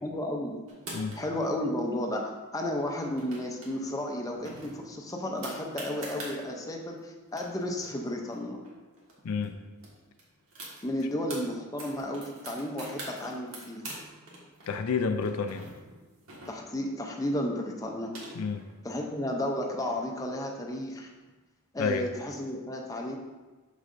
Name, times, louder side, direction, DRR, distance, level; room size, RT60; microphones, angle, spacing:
voice 1, 0.0-0.5 1.2-8.6 10.8-13.8 16.5-18.1 18.8-21.1 21.7-23.2, left 1 dB, 15° left, 1 dB, 0.6 m, -33 dB
sound 1, 0.7-1.5 2.9-3.7 4.0-4.1 4.5-6.4 7.0-7.1 7.3-9.1 9.4-9.5 9.8-11.4 11.8-14.0 14.3-16.9 17.7-18.7, right 2 dB, 65° right, 1.6 m, -44 dB
voice 2, 9.2-9.6 14.7-15.7 18.3-18.6 21.8-22.0, left 5 dB, 75° left, 7 dB, 0.4 m, -29 dB
6.4 x 6.3 x 2.6 m, 1.3 s
head